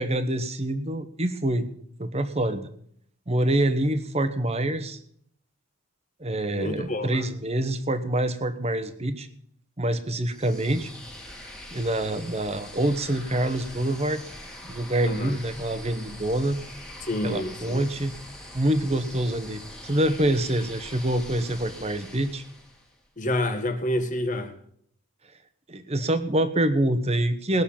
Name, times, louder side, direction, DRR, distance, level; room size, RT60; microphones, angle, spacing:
voice 1, 0.0-1.7 2.0-2.7 3.3-5.0 6.2-9.3 9.8-10.9 11.7-14.2 14.7-16.6 17.2-18.1 18.5-22.4 25.7-27.6, right 1 dB, 30° right, 1.1 m, -26 dB
voice 2, 6.5-7.3 15.0-15.4 17.0-17.8 23.2-24.5, left 1 dB, 35° left, 1.5 m, -28 dB
sound 1, 10.2-23.0, left 1 dB, 5° left, 1.8 m, -43 dB
20.0 x 6.7 x 7.2 m
head